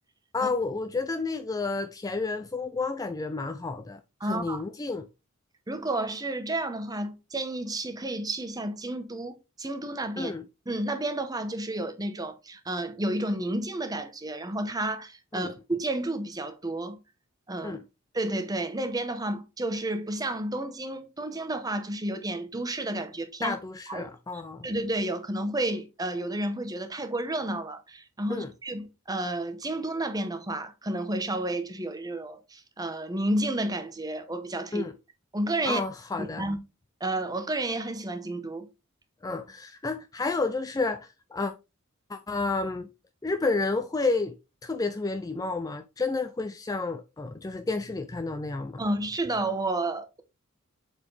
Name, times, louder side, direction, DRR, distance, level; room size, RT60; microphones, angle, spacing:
voice 1, 0.3-5.1 10.2-10.5 15.3-15.5 17.6-17.8 23.4-24.7 28.3-28.5 34.7-34.9 35.6-36.5 39.2-41.5 42.1-42.9 43.2-44.4 44.6-48.8, left 3 dB, 15° left, 0.3 m, -30 dB
voice 2, 4.2-4.6 5.7-10.3 10.7-17.0 17.5-17.8 18.1-23.6 23.9-24.1 24.6-34.9 35.3-35.8 36.2-36.6 37.0-38.7 48.8-50.2, right 1 dB, 15° right, 0.8 m, -31 dB
7.2 x 4.3 x 3.2 m
head